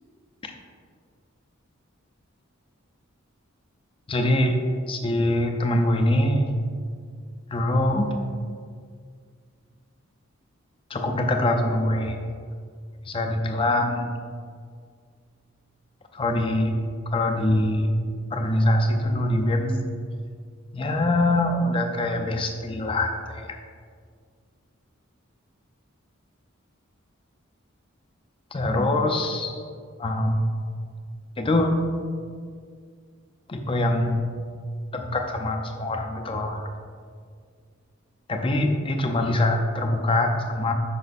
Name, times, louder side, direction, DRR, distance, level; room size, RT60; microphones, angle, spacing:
voice 1, 4.1-4.6 4.9-6.5 7.5-8.1 10.9-12.2 13.0-14.1 16.1-16.8 17.1-17.9 18.3-19.9 20.7-23.6 28.5-29.5 30.0-30.4 31.4-31.8 33.5-34.2 34.9-36.7 38.3-40.7, left 1 dB, 25° left, 4 dB, 0.5 m, -23 dB
5.5 x 5.2 x 4.1 m, 2.1 s
head